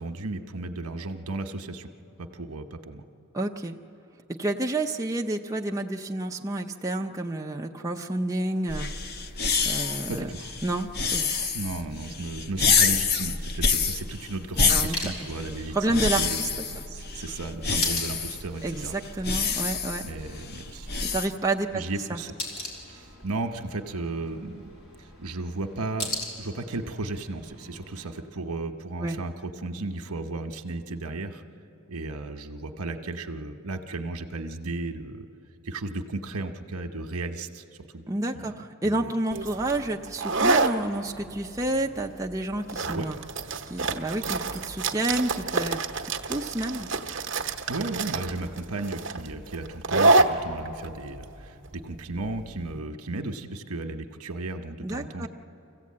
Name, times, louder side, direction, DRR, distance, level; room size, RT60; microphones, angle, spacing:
voice 1, 0.0-1.9 2.2-3.0 10.1-10.6 11.5-18.9 20.0-20.9 21.7-22.3 22.9-24.7 25.0-26.1 26.4-31.4 31.9-35.3 35.6-37.6 37.9-38.0 38.3-39.1 42.9-43.1 47.7-55.3, right 2 dB, 85° right, 6 dB, 1.0 m, -34 dB
voice 2, 3.3-3.7 4.3-8.9 9.2-9.3 9.6-10.3 10.6-11.5 14.7-15.3 15.7-16.5 18.6-20.0 21.1-21.8 22.1-22.2 29.0-29.2 38.1-43.2 43.6-46.9 54.8-55.3, right 2 dB, 15° right, 1 dB, 0.6 m, -30 dB
sound 1, 8.7-21.3, left 5 dB, 45° left, 0.7 m, -27 dB
sound 2, 13.9-28.2, left 1 dB, 70° left, 4.3 m, -41 dB
sound 3, 39.3-52.7, right 3 dB, 55° right, 1.0 m, -27 dB
24.5 x 15.5 x 8.6 m, 2.9 s
head